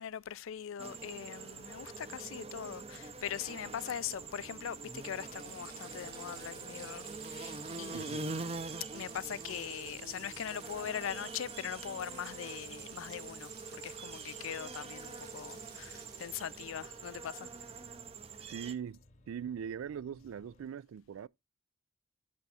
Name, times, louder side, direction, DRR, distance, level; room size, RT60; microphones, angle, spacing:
voice 1, 0.0-8.6 8.9-17.5, left 9 dB, 80° left, 0.4 m, -41 dB
sound 1, 0.8-18.7, right 4 dB, 30° right, 0.6 m, -45 dB
sound 2, 1.5-20.7, left 1 dB, 35° left, 0.8 m, -62 dB
Water tap faucet, 4.3-18.1, right 6 dB, 50° right, 2.3 m, -55 dB
voice 2, 7.9-8.3 18.4-21.3, right 8 dB, 85° right, 0.3 m, -41 dB
10.5 x 3.5 x 4.2 m
head